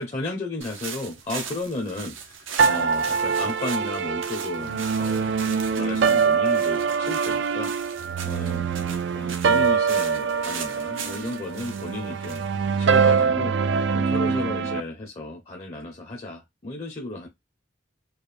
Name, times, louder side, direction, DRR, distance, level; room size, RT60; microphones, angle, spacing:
voice 1, 0.0-5.4 5.7-12.4 12.8-13.5 13.9-17.3, left 2 dB, 30° left, 0.6 m, -34 dB
sound 1, 0.6-13.4, right 6 dB, 90° right, 0.8 m, -39 dB
sound 2, 2.6-14.8, right 5 dB, 65° right, 0.4 m, -24 dB
4.5 x 2.2 x 3.3 m
head